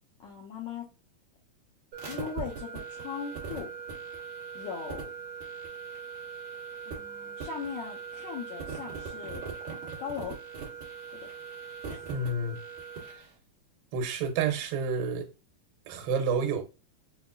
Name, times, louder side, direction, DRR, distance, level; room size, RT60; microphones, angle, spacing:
voice 1, 0.2-0.9 2.0-3.7 4.5-5.1 6.9-9.4 10.0-10.4 11.2-11.3 11.9-12.0, left 7 dB, 90° left, 1.6 m, -39 dB
sound 1, 1.9-13.2, right 5 dB, 50° right, 1.5 m, -40 dB
voice 2, 12.1-12.6 13.9-15.3 15.9-16.7, right 4 dB, 90° right, 2.5 m, -29 dB
6.3 x 2.3 x 2.4 m
omnidirectional pair, 4.1 m